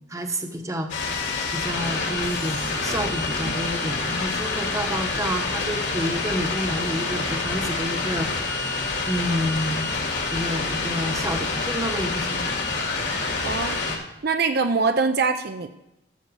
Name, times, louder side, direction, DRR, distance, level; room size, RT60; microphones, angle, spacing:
voice 1, 0.1-8.7 9.0-9.9 10.3-13.2 13.6-13.9, equal, 15° right, 5 dB, 1.0 m, -30 dB
sound 1, 0.9-14.0, left 3 dB, 60° left, 2.4 m, -27 dB
voice 2, 13.4-13.8 14.2-15.7, right 4 dB, 55° right, 7 dB, 0.5 m, -23 dB
14.0 x 6.8 x 4.7 m, 0.90 s
head